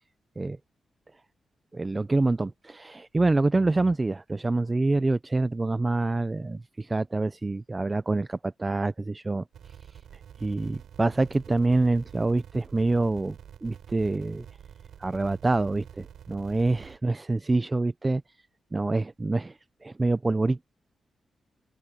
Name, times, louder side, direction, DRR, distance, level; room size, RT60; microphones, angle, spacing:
voice 1, 1.7-9.4 10.4-13.4 13.6-14.5 15.0-18.2 18.7-20.6, right 2 dB, 20° right, 0.3 m, -26 dB
sound 1, 9.5-17.0, right 9 dB, 90° right, 3.4 m, -48 dB
open air
wide cardioid pair, 140°, 0 cm